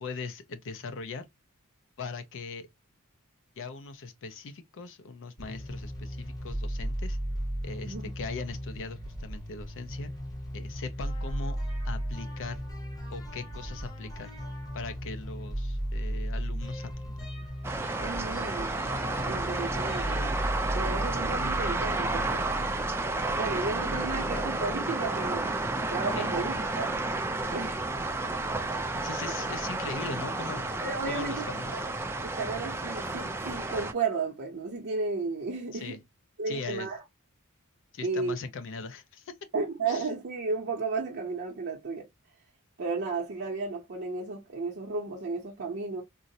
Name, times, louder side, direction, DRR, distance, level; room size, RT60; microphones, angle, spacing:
voice 1, 0.0-1.3 2.0-2.7 3.6-7.2 7.6-10.1 10.5-11.6 11.8-12.6 13.1-14.3 14.7-17.5 26.1-26.3 28.9-30.7 31.1-31.8 35.7-36.0 36.5-36.9 37.9-39.3 39.9-40.1, left 4 dB, 60° left, 0.5 m, -40 dB
sound 1, 5.4-22.7, equal, 15° left, 0.8 m, -36 dB
sound 2, 17.6-33.9, right 2 dB, 10° right, 0.4 m, -31 dB
voice 2, 18.0-18.7 19.3-20.3 20.7-22.4 23.4-25.5 25.9-26.9 27.5-27.8 28.5-28.7 29.2-29.3 30.8-31.5 31.7-31.9 32.2-36.0 36.4-37.0 38.0-38.3 39.5-42.1 42.8-46.0, right 4 dB, 50° right, 0.6 m, -33 dB
3.8 x 2.0 x 2.6 m
head